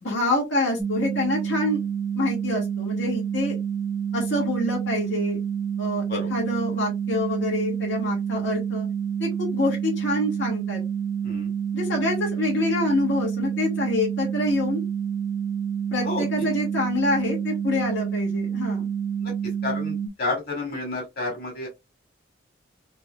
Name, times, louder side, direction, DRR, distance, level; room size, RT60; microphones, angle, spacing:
voice 1, 0.0-1.8 2.2-3.6 4.1-5.4 5.8-8.9 9.2-10.8 11.7-14.8 15.9-18.9, left 2 dB, 75° left, 1.8 m, -26 dB
sound 1, 0.8-20.1, right 8 dB, 5° left, 0.7 m, -28 dB
voice 2, 19.6-21.7, left 3 dB, 50° left, 2.2 m, -30 dB
4.2 x 3.2 x 2.3 m
head